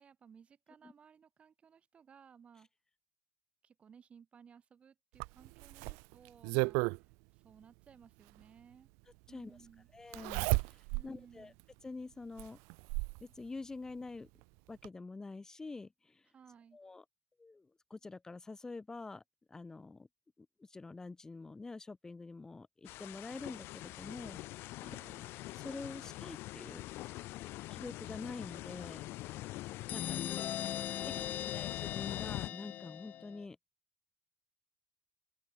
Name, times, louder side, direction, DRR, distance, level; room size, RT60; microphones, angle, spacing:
voice 1, 0.0-2.7 3.6-8.9 9.3-9.9 10.9-11.6 16.3-16.8 24.7-25.3 30.0-31.6, right 7 dB, 30° right, 5.6 m, -60 dB
Zipper (clothing), 5.2-7.0 8.4-8.5 10.1-11.1 11.6-11.7 12.4-13.2 14.4-14.5 14.8-14.9, right 35 dB, 75° right, 0.7 m, -33 dB
voice 2, 9.3-9.6 9.9-11.5 11.8-12.6 13.2-14.3 14.7-16.3 16.7-17.0 17.4-19.2 19.5-20.1 20.6-24.4 25.5-26.8 27.7-29.1 29.9-30.2 31.0-31.1 31.4-33.6, left 3 dB, 15° left, 2.9 m, -46 dB
sound 1, 22.8-32.5, left 18 dB, 60° left, 3.1 m, -44 dB
sound 2, 29.9-33.4, left 11 dB, 45° left, 1.7 m, -39 dB
open air
cardioid pair, 140°, 4 cm